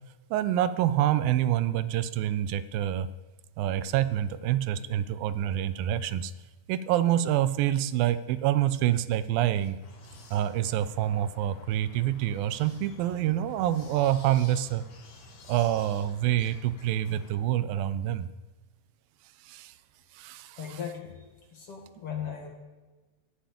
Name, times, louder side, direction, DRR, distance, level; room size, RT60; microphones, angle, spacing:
voice 1, 0.3-3.1 3.6-6.3 6.7-9.8 10.3-14.9 15.5-18.3 19.4-19.7 20.1-20.8, right 12 dB, 90° right, 14 dB, 2.5 m, -27 dB
sound 1, 9.8-17.4, left 2 dB, 65° left, 3.8 m, -50 dB
voice 2, 20.6-21.2 21.5-22.5, left 8 dB, 45° left, 2 dB, 2.4 m, -38 dB
19.0 x 7.7 x 8.3 m, 1.2 s
omnidirectional pair, 4.0 m